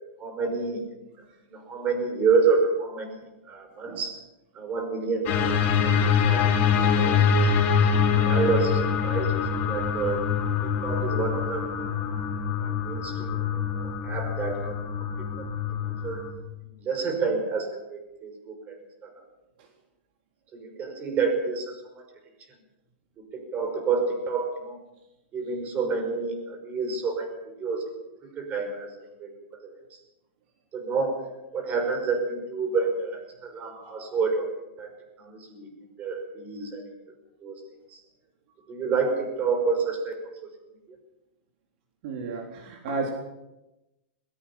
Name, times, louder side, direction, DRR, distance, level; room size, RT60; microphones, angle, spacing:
voice 1, 0.2-0.9 1.1-1.2 1.5-4.2 4.5-6.5 6.9-7.2 8.1-10.3 10.6-12.0 12.6-16.2 16.8-19.1 20.5-22.1 23.3-24.8 25.3-27.9 28.2-28.9 29.2-29.3 29.6-30.0 30.7-34.5 34.8-35.7 36.0-36.8 37.4-37.6 37.9-38.0 38.7-40.5 40.9-41.0, right 4 dB, 25° right, 5 dB, 5.9 m, -29 dB
sound 1, 5.3-16.3, left 6 dB, 35° left, 4.6 m, -24 dB
voice 2, 42.0-43.1, right 3 dB, 55° right, 1 dB, 3.9 m, -32 dB
21.5 x 21.0 x 5.8 m, 0.97 s
supercardioid pair, 145°, 6 cm